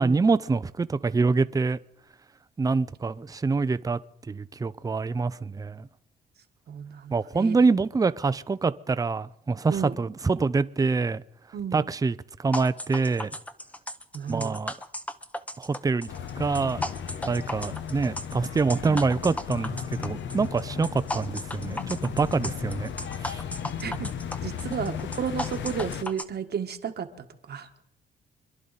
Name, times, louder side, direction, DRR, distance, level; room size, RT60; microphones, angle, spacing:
voice 1, 0.0-1.8 2.6-4.0 4.3-5.9 7.1-11.2 11.7-13.3 14.3-14.7 15.6-16.8 17.3-22.9 23.2-23.4, right 4 dB, 20° right, 0.5 m, -25 dB
voice 2, 6.7-7.5 9.7-10.0 11.5-11.9 14.1-14.6 23.8-24.1 24.4-27.7, right 7 dB, 55° right, 1.3 m, -33 dB
sound 1, 12.5-26.2, left 1 dB, 5° left, 0.9 m, -36 dB
sound 2, 16.1-26.0, left 8 dB, 70° left, 0.9 m, -35 dB
26.0 x 11.0 x 4.1 m
cardioid pair, 90°, 20 cm